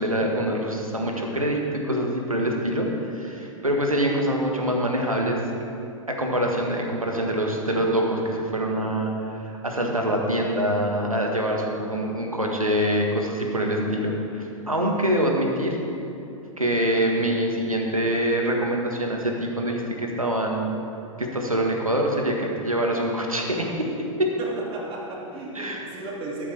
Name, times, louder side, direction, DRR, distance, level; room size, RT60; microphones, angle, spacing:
voice 1, 0.0-5.4 6.1-9.1 9.4-15.8 16.6-20.8 21.2-23.9 24.2-24.3 25.5-25.9, right 1 dB, 90° right, 0 dB, 1.7 m, -25 dB
voice 2, 24.4-26.5, right 2 dB, 30° right, -3 dB, 2.7 m, -34 dB
13.0 x 11.5 x 3.5 m, 2.8 s
figure-of-eight pair, 100°, 17 cm